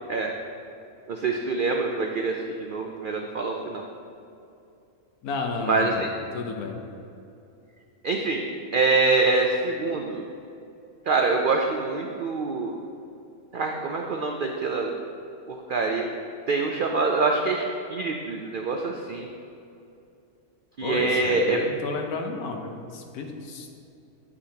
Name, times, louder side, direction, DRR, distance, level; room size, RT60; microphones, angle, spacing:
voice 1, 1.1-3.8 5.6-5.9 8.0-8.4 8.7-10.2 11.1-12.8 13.5-14.9 15.5-16.1 16.5-19.3 20.8-21.6, right 3 dB, 80° right, 2 dB, 0.4 m, -25 dB
voice 2, 5.2-6.1 6.3-6.8 20.8-23.7, left 3 dB, 90° left, 3 dB, 1.3 m, -32 dB
9.7 x 6.4 x 2.8 m, 2.7 s
omnidirectional pair, 1.5 m